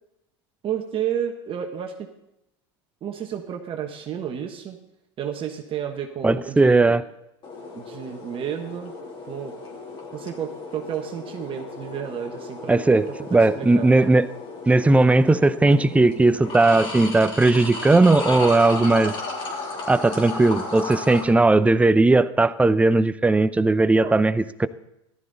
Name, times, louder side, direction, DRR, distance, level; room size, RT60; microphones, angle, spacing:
voice 1, 0.6-2.1 3.0-4.8 5.2-7.0 7.7-8.9 9.3-9.5 10.1-12.8 13.5-13.9 23.9-24.1, right 9 dB, 35° right, 3 dB, 1.3 m, -31 dB
voice 2, 6.2-7.0 12.7-14.3 14.7-19.1 19.9-24.7, right 2 dB, 10° right, 14 dB, 0.6 m, -18 dB
sound 1, 7.4-21.2, left 3 dB, 35° left, 3.4 m, -35 dB
14.5 x 12.5 x 4.1 m, 0.85 s
hypercardioid pair, 100°, 15 cm